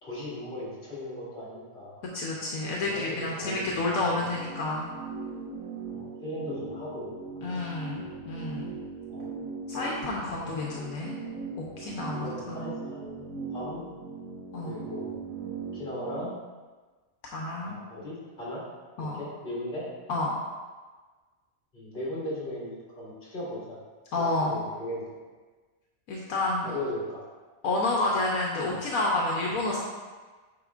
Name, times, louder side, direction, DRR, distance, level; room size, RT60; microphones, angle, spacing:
voice 1, 0.0-2.0 2.8-4.2 5.9-7.1 7.4-7.6 9.1-9.3 10.7-10.8 11.9-13.3 13.5-13.9 14.6-15.1 15.7-16.3 17.6-18.6 19.0-19.9 21.7-23.8 24.2-25.0 26.6-27.3, left 1 dB, 35° left, -7 dB, 2.3 m, -37 dB
voice 2, 2.1-4.9 7.4-8.7 9.7-11.2 11.6-12.7 14.5-14.8 17.3-17.8 19.0-19.2 20.1-20.3 24.1-24.6 26.1-26.7 27.6-29.8, left 2 dB, 75° left, -3 dB, 1.2 m, -29 dB
sound 1, 3.8-16.3, right 5 dB, 75° right, 1.2 m, -40 dB
8.8 x 5.1 x 2.4 m, 1.3 s
omnidirectional pair, 1.5 m